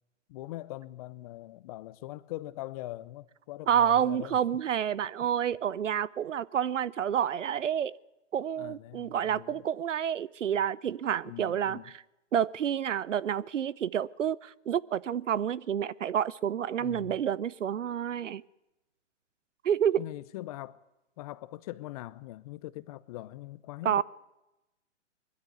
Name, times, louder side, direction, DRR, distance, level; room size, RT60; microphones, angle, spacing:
voice 1, 0.3-4.4 8.6-9.6 11.2-11.9 16.8-17.2 20.0-20.8 21.2-24.0, left 16 dB, 30° left, 0.7 m, -42 dB
voice 2, 3.7-7.9 8.3-11.8 12.3-18.4 19.6-20.0 23.8-24.0, right 9 dB, 85° right, 0.8 m, -29 dB
21.5 x 13.0 x 9.4 m
hypercardioid pair, 140°, 36 cm